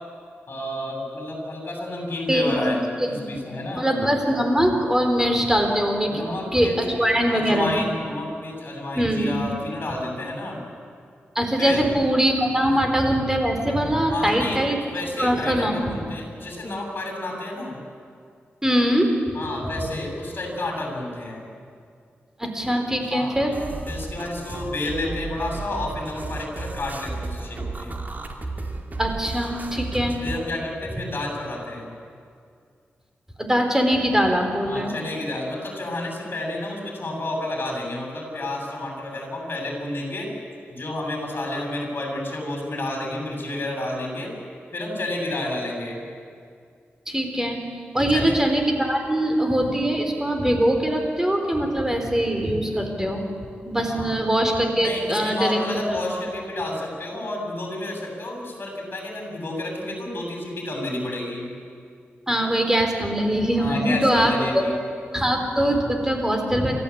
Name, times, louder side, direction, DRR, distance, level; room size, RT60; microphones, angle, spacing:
voice 1, 0.5-3.9 6.1-6.8 7.3-10.6 11.6-11.8 14.1-14.6 14.9-17.8 19.3-21.5 23.1-23.3 23.9-27.9 30.2-31.9 34.6-40.3 40.7-44.3 44.7-46.0 48.1-48.3 53.9-54.1 54.8-61.5 63.6-64.7, left 1 dB, 50° left, 0 dB, 7.7 m, -30 dB
voice 2, 3.0-3.4 3.7-6.2 6.5-7.9 9.0-9.4 11.3-14.8 15.2-16.0 18.6-19.1 22.4-23.6 29.0-30.2 33.4-35.0 47.1-47.6 47.9-53.2 53.6-55.6 55.9-56.0 62.3-64.6 65.1-66.7, equal, 10° right, 4 dB, 4.0 m, -22 dB
sound 1, 23.5-30.4, right 3 dB, 40° right, 2.6 m, -33 dB
29.0 x 14.0 x 8.6 m, 2.3 s
cardioid pair, 75°, 4 cm